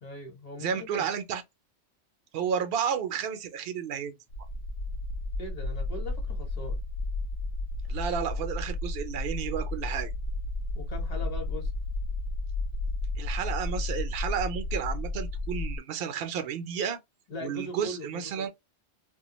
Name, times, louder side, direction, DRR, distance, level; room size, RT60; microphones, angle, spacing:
voice 1, 0.0-1.1 5.4-6.8 10.7-11.7 17.3-18.5, left 1 dB, 35° left, 0.9 m, -40 dB
voice 2, 0.6-1.4 2.3-4.1 7.9-10.1 13.2-17.0 17.4-18.5, right 8 dB, 60° right, 0.7 m, -32 dB
sound 1, 4.3-15.8, left 2 dB, 70° left, 0.8 m, -32 dB
2.2 x 2.2 x 2.9 m
omnidirectional pair, 1.2 m